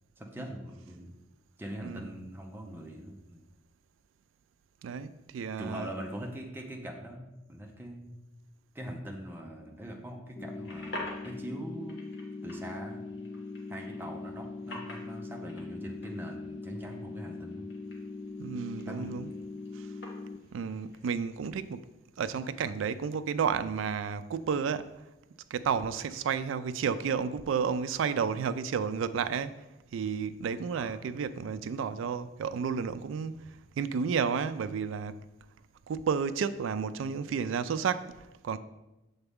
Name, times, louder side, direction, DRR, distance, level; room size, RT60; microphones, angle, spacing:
voice 1, 0.2-1.1 1.6-3.4 5.6-8.2 8.7-12.0 12.4-13.0 13.7-17.7 18.9-19.2 30.7-30.9, equal, 10° right, 0.6 m, -42 dB
voice 2, 1.8-2.2 4.8-5.9 18.4-19.3 19.7-19.9 20.5-21.9 22.2-25.0 25.5-35.2 35.9-38.6, right 6 dB, 90° right, 0.3 m, -32 dB
sound 1, 10.4-21.0, left 1 dB, 65° left, 1.3 m, -48 dB
sound 2, 10.4-20.4, left 3 dB, 30° left, 0.3 m, -41 dB
6.8 x 4.0 x 3.5 m
head